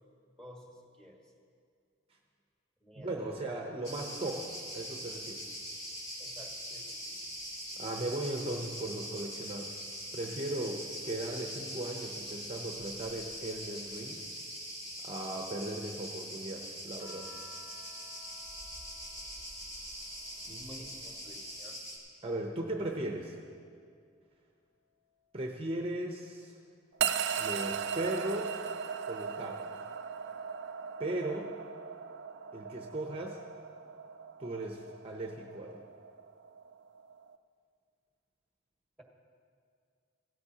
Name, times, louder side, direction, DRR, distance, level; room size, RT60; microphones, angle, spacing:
voice 1, 0.4-1.3 2.8-3.3 6.2-7.3 20.6-21.8, equal, 5° left, -1 dB, 1.5 m, -53 dB
voice 2, 2.9-5.5 7.8-9.8 10.1-14.3 15.0-17.3 20.4-20.9 22.2-23.4 25.3-26.6 27.4-28.6 29.0-29.7 31.0-31.5 32.5-33.4 34.4-35.9, right 1 dB, 30° right, 2 dB, 0.7 m, -37 dB
Cricket, 3.8-22.0, equal, 30° left, 2.2 m, -43 dB
sound 1, 17.0-21.8 22.2-24.0 25.2-25.7, left 3 dB, 75° left, 3.3 m, -59 dB
sound 2, 27.0-37.3, right 7 dB, 60° right, 0.4 m, -38 dB
16.5 x 13.0 x 2.9 m, 2.2 s
head